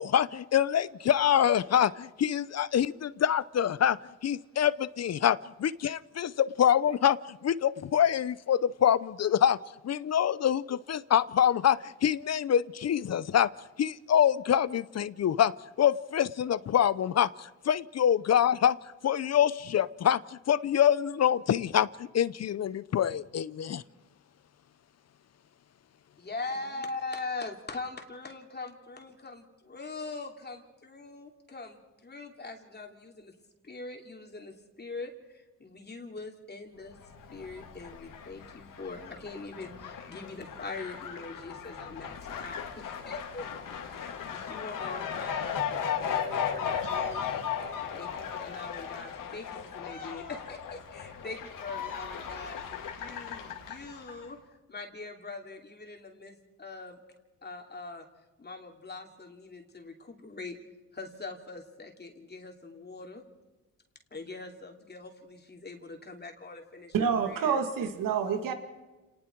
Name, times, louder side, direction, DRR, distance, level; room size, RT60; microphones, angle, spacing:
voice 1, 0.0-9.6 9.8-13.5 13.8-15.5 15.8-18.8 19.0-23.8, left 9 dB, 50° left, 18 dB, 0.7 m, -25 dB
voice 2, 26.2-33.3 33.6-37.0 37.3-43.5 43.9-45.6 46.0-47.4 47.9-54.4 54.7-57.0 57.4-58.1 58.4-60.6 60.9-63.2 64.1-67.6, left 3 dB, 30° left, 2 dB, 2.9 m, -42 dB
Fowl, 36.9-54.3, left 7 dB, 80° left, 2.6 m, -36 dB
voice 3, 66.9-68.5, right 6 dB, 85° right, 6 dB, 2.1 m, -28 dB
29.5 x 19.5 x 4.6 m, 1.1 s
cardioid pair, 90°, 32 cm